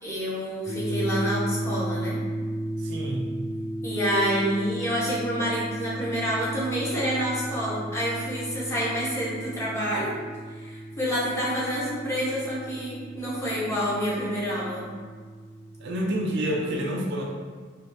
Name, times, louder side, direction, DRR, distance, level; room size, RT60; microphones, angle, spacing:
voice 1, 0.0-2.2 3.8-10.1 10.5-14.9, equal, 15° left, -8 dB, 1.0 m, -28 dB
sound 1, 0.6-16.5, right 1 dB, 60° left, 1.4 m, -35 dB
voice 2, 2.8-3.3 15.8-17.2, right 1 dB, 60° right, -1 dB, 0.5 m, -28 dB
5.1 x 2.4 x 2.6 m, 1.5 s
head